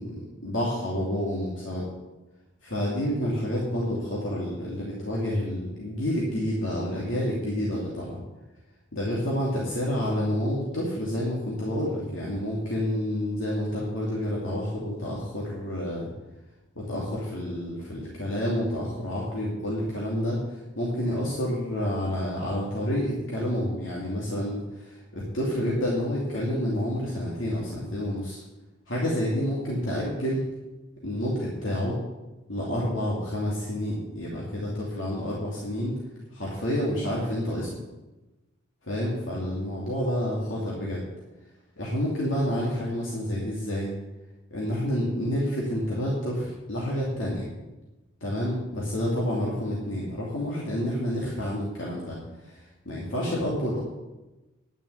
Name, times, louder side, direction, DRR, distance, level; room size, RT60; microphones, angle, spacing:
voice 1, 0.0-1.9 2.6-8.2 8.9-16.1 16.7-28.4 28.9-30.5 31.0-32.0 32.5-35.9 36.3-37.7 38.8-41.0 41.8-43.9 44.5-47.5 48.2-52.2 52.4-53.8, equal, 80° left, -5 dB, 2.7 m, -29 dB
11.0 x 6.5 x 8.3 m, 1.1 s
head